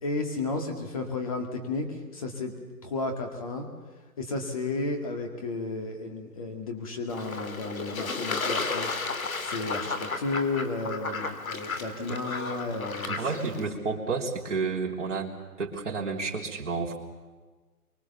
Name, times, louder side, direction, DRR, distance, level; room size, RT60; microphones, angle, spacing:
voice 1, 0.0-2.5 2.8-3.7 4.2-8.9 9.4-13.2, left 3 dB, 20° left, 4 dB, 2.1 m, -33 dB
Fowl / Bird / Water, 7.1-13.6, left 4 dB, 60° left, 2.6 m, -33 dB
voice 2, 13.1-15.3 15.6-17.0, right 4 dB, 50° right, -1 dB, 3.6 m, -31 dB
25.5 x 24.0 x 7.1 m, 1.3 s
hypercardioid pair, 175°, 47 cm